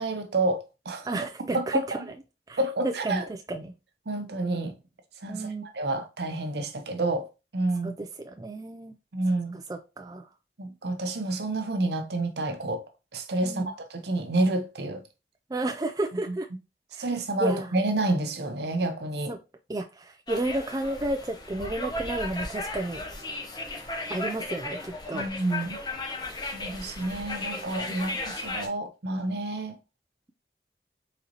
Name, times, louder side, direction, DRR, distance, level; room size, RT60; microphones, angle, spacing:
voice 1, 0.0-1.1 1.5-2.0 2.6-3.2 4.1-4.7 5.2-7.3 7.5-7.9 9.1-9.6 10.6-12.8 13.1-15.0 16.3-16.4 17.0-19.3 25.1-25.8 26.5-29.8, right 2 dB, 70° right, 0.8 m, -29 dB
voice 2, 1.0-2.0 2.5-2.6 2.8-3.7 5.3-5.6 7.8-8.9 9.5-10.3 13.4-13.7 15.5-16.5 16.9-17.1 17.4-17.8 19.3-19.4 19.7-23.0 24.1-25.3, right 1 dB, 20° right, 0.3 m, -32 dB
sound 1, 20.3-28.7, left 2 dB, 25° left, 0.8 m, -35 dB
4.1 x 3.9 x 2.9 m
head